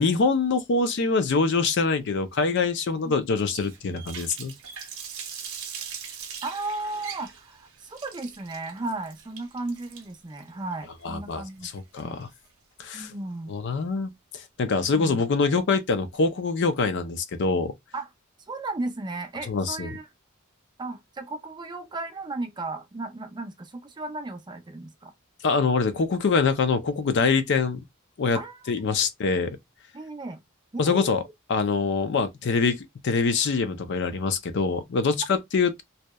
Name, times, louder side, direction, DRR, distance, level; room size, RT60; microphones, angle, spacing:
voice 1, 0.0-4.5 11.0-12.3 12.8-13.1 13.5-17.7 19.5-20.0 25.4-27.8 28.2-28.4 28.7-29.5 30.8-31.2 31.5-35.8, left 4 dB, 55° left, 0.4 m, -24 dB
Water tap faucet, 3.5-12.5, right 7 dB, 90° right, 0.6 m, -41 dB
voice 2, 6.4-11.7 12.0-12.2 12.9-13.5 14.9-15.2 17.9-18.1 18.5-20.1 20.8-25.1 28.3-28.7 29.4-29.5 29.9-30.4 30.7-31.2, right 2 dB, 20° right, 0.4 m, -35 dB
2.7 x 2.0 x 2.2 m
head